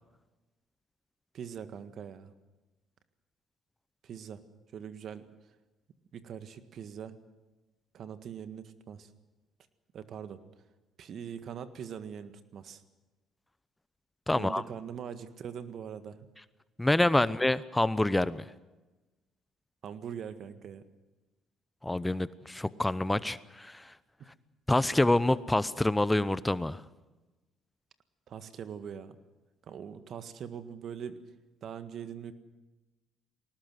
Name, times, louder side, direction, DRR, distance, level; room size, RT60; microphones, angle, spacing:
voice 1, 1.3-2.3 4.0-4.4 4.7-5.2 6.1-7.1 7.9-9.1 9.9-10.4 11.0-12.8 14.3-16.2 19.8-20.8 24.2-24.3 28.3-29.2 29.7-31.2 31.6-32.3, right 8 dB, 60° right, 11 dB, 1.7 m, -42 dB
voice 2, 14.3-14.6 16.8-18.4 21.8-23.9 24.7-26.8, left 1 dB, 10° left, 17 dB, 0.7 m, -27 dB
21.0 x 19.0 x 7.8 m, 1.1 s
supercardioid pair, 65°, 0 cm